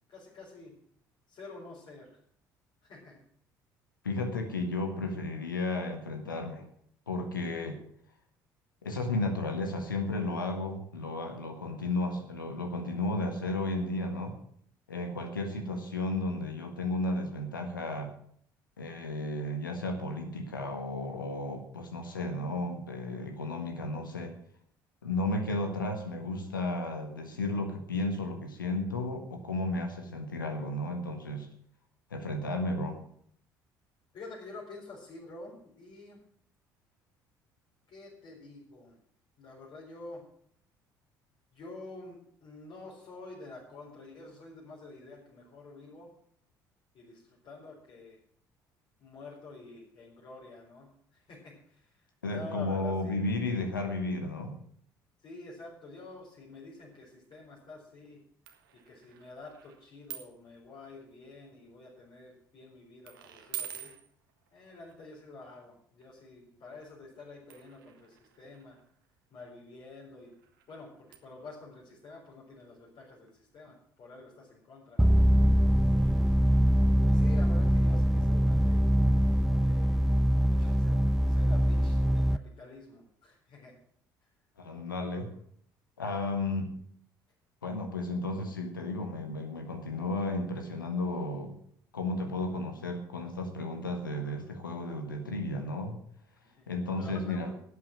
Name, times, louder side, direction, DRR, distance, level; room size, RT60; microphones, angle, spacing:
voice 1, 0.1-0.8 1.3-2.2 2.8-3.2 34.1-36.2 37.9-39.0 39.4-40.2 41.5-46.1 46.9-48.2 49.0-53.3 55.2-58.2 58.7-63.9 64.5-68.8 69.3-70.3 70.7-75.2 75.9-76.3 77.1-78.8 79.6-80.0 80.4-83.7 84.2-84.3 96.4-96.6 97.0-97.5, left 2 dB, 50° left, -5 dB, 4.4 m, -48 dB
voice 2, 4.0-6.7 7.1-7.8 8.8-14.4 14.9-18.2 18.8-24.4 25.0-31.5 32.1-33.0 52.2-54.6 84.6-85.3 86.0-86.7 87.6-91.5 91.9-96.0 96.7-97.5, left 2 dB, 85° left, 5 dB, 1.5 m, -33 dB
sound 1, 56.9-57.0 57.2-57.4 58.4-60.5 60.8-61.2 61.9-62.2 63.0-65.0 66.0-66.1 67.5-73.0 73.3-73.4 73.7-73.8, right 10 dB, 75° right, 1.3 m, -47 dB
sound 2, 75.0-82.4, equal, 5° right, 0.4 m, -23 dB
12.0 x 8.4 x 7.6 m, 0.64 s
figure-of-eight pair, 55°, 11 cm